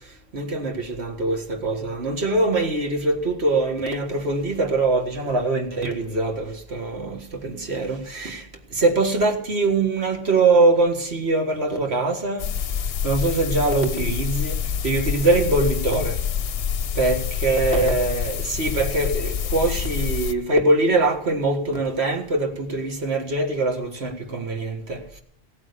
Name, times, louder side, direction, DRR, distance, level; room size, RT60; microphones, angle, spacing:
voice 1, 0.3-12.5 13.0-16.2 17.0-25.2, right 2 dB, 60° right, 2.0 m, -23 dB
sound 1, 12.4-20.3, left 8 dB, 60° left, 0.9 m, -27 dB
17.0 x 8.8 x 6.8 m
omnidirectional pair, 1.3 m